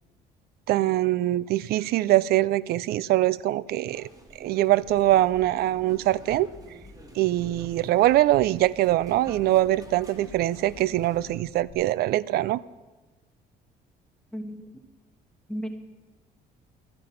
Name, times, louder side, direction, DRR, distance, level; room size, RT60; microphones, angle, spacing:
voice 1, 0.7-4.1 4.4-6.5 7.2-12.6, right 15 dB, 70° right, 21 dB, 0.4 m, -23 dB
sound 1, 3.8-11.4, right 1 dB, 20° right, 1.6 m, -50 dB
sound 2, 4.9-11.7, left 5 dB, 35° left, 1.5 m, -51 dB
voice 2, 14.3-14.7 15.5-15.7, equal, 5° left, 4 dB, 1.3 m, -34 dB
12.5 x 10.5 x 5.9 m, 1.2 s
cardioid pair, 110°, 17 cm